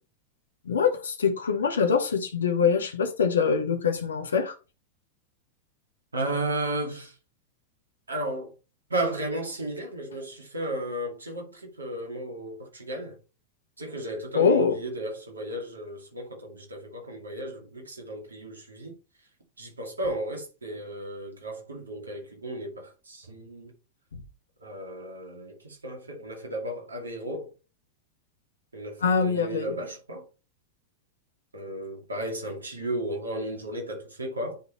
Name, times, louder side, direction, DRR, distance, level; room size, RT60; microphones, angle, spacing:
voice 1, 0.7-4.5 14.3-14.8 24.1-24.2 29.0-29.7, left 6 dB, 70° left, 1.3 m, -24 dB
voice 2, 6.1-7.1 8.1-8.5 8.9-13.2 13.8-19.0 19.6-23.7 24.6-27.5 28.7-30.3 31.5-34.6, right 1 dB, 75° right, 2.3 m, -34 dB
10.0 x 4.1 x 3.1 m
figure-of-eight pair, 90°, 0 cm